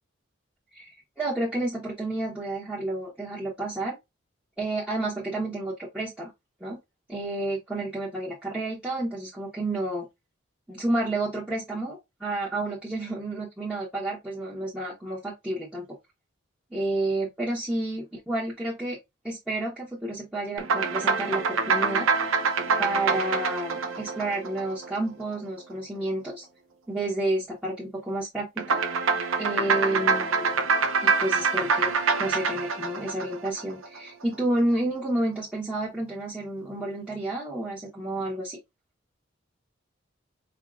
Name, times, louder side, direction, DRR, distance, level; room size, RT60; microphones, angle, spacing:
voice 1, 1.2-3.9 4.6-6.3 6.6-6.8 7.1-10.1 10.7-15.8 16.7-19.0 19.2-22.1 22.8-26.4 26.9-28.8 29.4-30.6 31.0-31.9 32.2-38.6, right 1 dB, 5° right, 1.0 m, -30 dB
sound 1, 20.6-25.2 28.6-34.0, right 5 dB, 85° right, 0.6 m, -25 dB
4.6 x 2.9 x 2.4 m
head